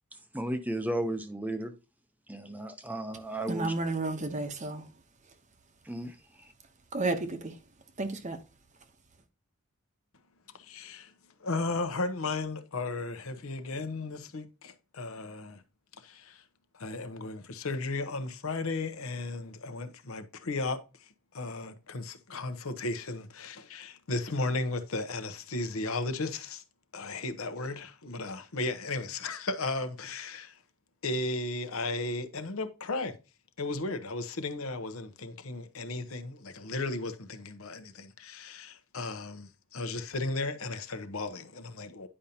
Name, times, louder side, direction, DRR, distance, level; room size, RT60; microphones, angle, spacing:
voice 1, 0.3-1.7 2.3-3.7 5.8-6.5, right 1 dB, 5° right, 0.6 m, -34 dB
voice 2, 3.5-4.8 6.9-7.5 8.0-8.4, right 2 dB, 35° right, 0.8 m, -31 dB
voice 3, 10.5-11.1 11.4-15.6 16.0-16.4 16.7-26.6 26.9-30.6 31.0-33.2 33.6-42.1, left 2 dB, 70° left, 0.9 m, -35 dB
9.9 x 5.2 x 2.8 m
head